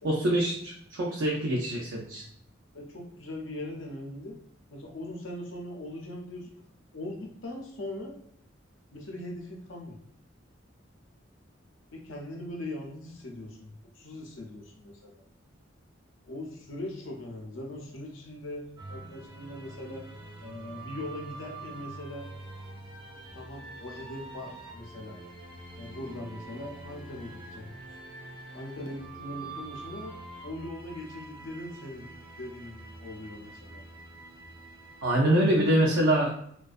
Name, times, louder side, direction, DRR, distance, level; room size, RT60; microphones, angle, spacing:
voice 1, 0.0-2.2 35.0-36.3, right 1 dB, 80° right, -3 dB, 0.4 m, -25 dB
voice 2, 2.7-4.4 4.7-6.6 6.9-8.1 8.9-10.0 11.9-15.2 16.3-20.1 20.4-22.3 23.3-25.2 25.8-27.8 28.5-30.1 30.4-32.0 32.4-33.8, left 1 dB, 90° left, 0 dB, 0.6 m, -40 dB
sound 1, 18.8-35.1, right 2 dB, 25° right, 0.5 m, -45 dB
2.3 x 2.2 x 2.4 m, 0.67 s
head